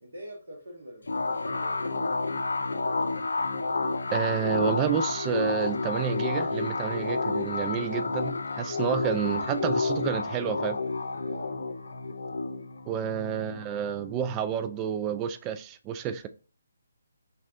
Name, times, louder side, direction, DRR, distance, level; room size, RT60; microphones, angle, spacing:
voice 1, 0.0-2.0 11.1-11.6, right 1 dB, 65° right, 1.3 m, -45 dB
sound 1, 1.1-14.3, left 3 dB, 75° left, 0.4 m, -30 dB
voice 2, 4.1-10.8 12.9-16.3, right 8 dB, 20° right, 0.3 m, -30 dB
5.3 x 2.4 x 2.6 m
figure-of-eight pair, 145°, 0 cm